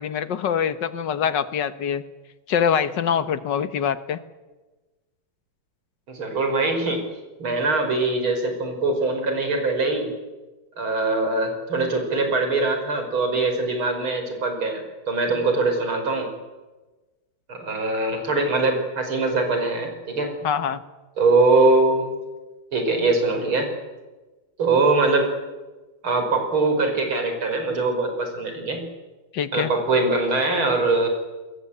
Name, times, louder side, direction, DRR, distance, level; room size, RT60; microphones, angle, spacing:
voice 1, 0.0-2.0 2.5-4.2 20.4-20.8 29.3-29.7, left 8 dB, 65° left, 12 dB, 1.9 m, -24 dB
voice 2, 6.1-7.0 7.4-10.1 10.8-16.3 17.5-20.3 21.2-22.1 22.7-23.7 24.6-25.3 26.0-28.8 29.5-31.1, right 3 dB, 90° right, 5 dB, 5.9 m, -22 dB
29.0 x 21.0 x 8.6 m, 1.2 s
omnidirectional pair, 2.2 m